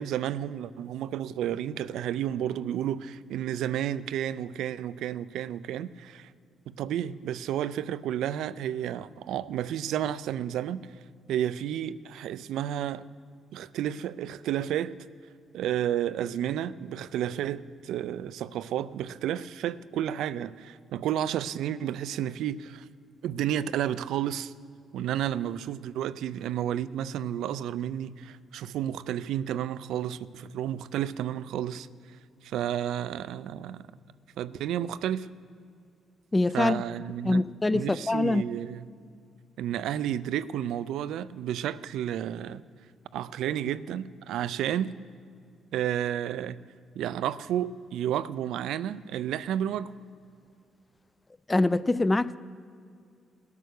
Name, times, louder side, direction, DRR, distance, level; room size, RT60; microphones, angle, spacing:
voice 1, 0.0-6.3 6.7-10.9 11.3-13.0 13.5-15.0 15.5-22.9 23.2-24.5 24.9-31.9 32.4-33.9 34.4-35.3 36.5-37.5 37.7-38.9 39.6-42.6 43.1-45.0 45.7-46.6 46.9-49.9, right 10 dB, 80° right, 0.4 m, -31 dB
voice 2, 36.3-36.8 37.2-38.4 51.5-52.4, left 2 dB, 20° left, 0.4 m, -24 dB
17.5 x 8.4 x 6.5 m
cardioid pair, 90°, 0 cm